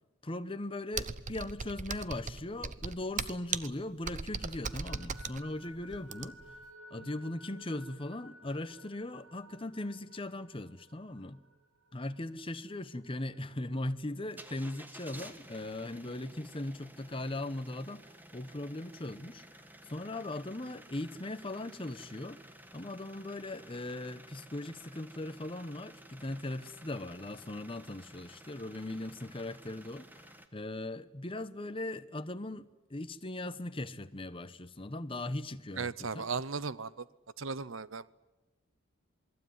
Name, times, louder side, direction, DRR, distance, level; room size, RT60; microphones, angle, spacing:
voice 1, 0.2-6.4 6.9-11.4 11.9-19.4 19.9-22.4 22.7-36.3, left 1 dB, 25° left, 1.0 m, -39 dB
Computer keyboard, 0.9-6.6, right 5 dB, 35° right, 0.9 m, -38 dB
sound 1, 4.4-13.5, equal, 85° right, 4.5 m, -57 dB
sound 2, 14.3-30.5, right 1 dB, 10° right, 1.6 m, -54 dB
voice 2, 35.8-37.0 37.4-38.0, right 5 dB, 65° right, 0.8 m, -36 dB
27.5 x 21.5 x 9.6 m
head